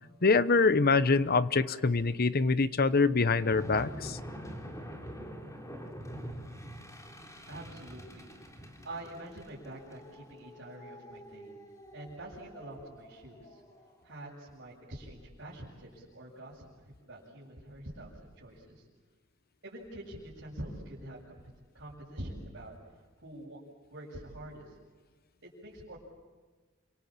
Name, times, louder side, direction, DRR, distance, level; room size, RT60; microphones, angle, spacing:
voice 1, 0.2-4.2, left 4 dB, 45° left, 14 dB, 0.9 m, -25 dB
sound 1, 3.3-13.9, equal, 15° left, 3.4 m, -46 dB
voice 2, 7.5-11.6 11.9-13.6 14.0-18.9 19.6-21.4 21.7-23.6 23.9-24.8 25.4-26.0, right 1 dB, 60° right, -5 dB, 7.4 m, -46 dB
30.0 x 26.5 x 7.5 m, 1.4 s
head